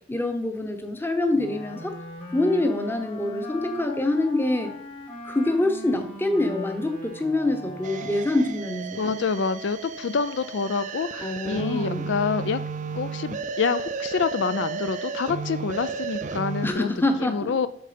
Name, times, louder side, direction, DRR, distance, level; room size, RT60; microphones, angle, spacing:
voice 1, 0.1-2.0 2.3-4.7 5.2-9.1 11.2-12.1 16.6-17.5, left 2 dB, 10° left, 6 dB, 0.9 m, -25 dB
Wind instrument woodwind instrument, 1.3-8.7, left 1 dB, 30° left, 1.5 m, -40 dB
sound 1, 7.8-16.7, right 5 dB, 40° right, 0.5 m, -33 dB
voice 2, 9.0-12.6 12.9-16.9 17.2-17.7, left 5 dB, 65° left, 13 dB, 0.4 m, -27 dB
8.0 x 6.4 x 5.1 m, 0.70 s
head